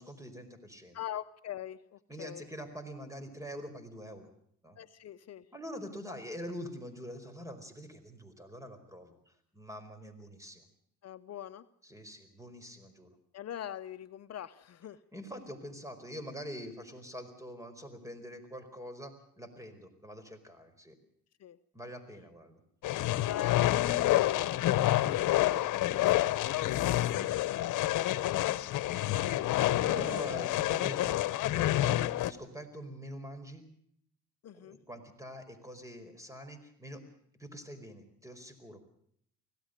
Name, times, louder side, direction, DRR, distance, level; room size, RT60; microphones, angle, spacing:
voice 1, 0.0-1.0 2.1-4.3 4.6-4.8 5.5-10.6 11.8-13.2 15.1-20.9 21.7-22.6 29.6-31.2 31.5-33.6 34.5-37.0 37.4-38.8, equal, 10° right, 10 dB, 4.7 m, -45 dB
voice 2, 0.9-2.5 4.8-5.5 11.0-11.7 13.3-15.0 21.4-21.6 23.0-26.6 26.9-28.3 29.8-30.1 34.4-34.8, left 11 dB, 55° left, 11 dB, 0.8 m, -44 dB
sound 1, 22.8-32.3, left 15 dB, 85° left, 1.0 m, -28 dB
25.0 x 17.0 x 6.6 m, 0.67 s
cardioid pair, 90°, 30 cm